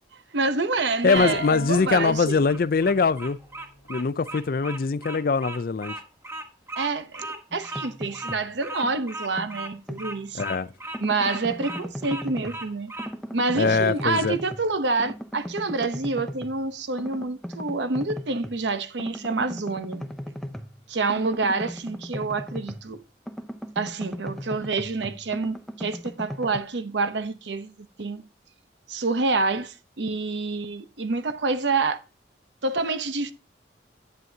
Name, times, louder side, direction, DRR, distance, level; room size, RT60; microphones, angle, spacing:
voice 1, 0.3-2.4 6.8-10.4 11.0-12.9 13.3-20.1 20.9-23.0 23.8-28.2 28.9-32.0 32.6-33.3, right 3 dB, 75° right, 0.8 m, -27 dB
voice 2, 1.0-3.4 3.9-6.0 10.3-10.7 13.6-14.4, left 4 dB, 50° left, 0.4 m, -22 dB
sound 1, 1.2-4.8, left 3 dB, 65° left, 1.3 m, -40 dB
Bird vocalization bird call bird song, 2.3-13.1, right 2 dB, 15° right, 1.1 m, -37 dB
sound 2, 7.5-8.5 8.8-10.6 10.9-12.7 13.0-14.7 15.0-16.6 17.0-18.6 19.0-23.0 23.3-26.6, equal, ahead, 0.6 m, -37 dB
10.5 x 9.2 x 2.8 m
head